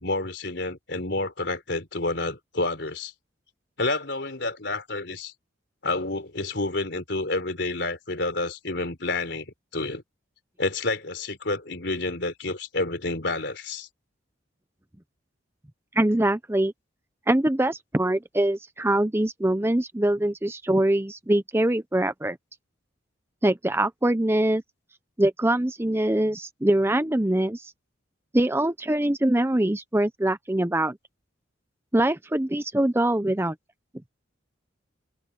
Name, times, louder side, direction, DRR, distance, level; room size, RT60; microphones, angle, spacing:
voice 1, 0.0-3.1 3.8-5.3 5.8-10.0 10.6-13.9, left 2 dB, 65° left, 4.0 m, -29 dB
voice 2, 15.9-16.7 17.3-22.4 23.4-24.6 25.2-27.7 28.3-31.0 31.9-33.5, right 1 dB, 15° right, 0.7 m, -23 dB
head